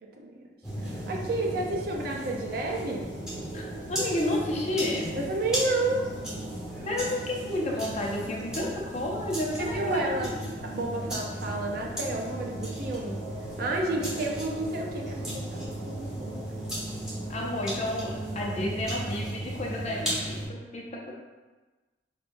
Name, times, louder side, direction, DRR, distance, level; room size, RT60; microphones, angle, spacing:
voice 1, 0.0-0.3 0.8-3.1 5.2-6.1 9.6-10.3 10.6-13.2 13.6-16.4, right 2 dB, 55° right, 0 dB, 0.5 m, -31 dB
sound 1, 0.6-20.4, right 1 dB, 5° right, 1.1 m, -35 dB
voice 2, 3.5-5.2 6.8-10.5 17.3-21.1, left 1 dB, 40° left, -2 dB, 0.6 m, -31 dB
5.3 x 2.3 x 2.6 m, 1.2 s
head